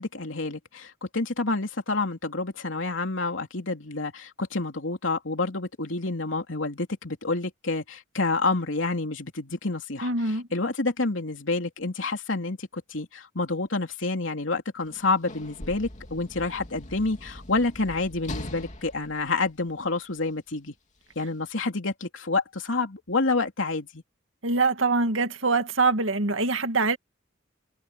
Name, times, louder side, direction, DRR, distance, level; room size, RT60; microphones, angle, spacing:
voice 1, 0.0-20.7 21.1-24.0, left 3 dB, 80° left, 3.0 m, -28 dB
voice 2, 10.0-10.5 24.4-27.0, right 3 dB, 85° right, 2.0 m, -24 dB
Sliding door / Slam, 14.8-20.2 21.1-21.3, left 1 dB, 40° left, 2.8 m, -41 dB
head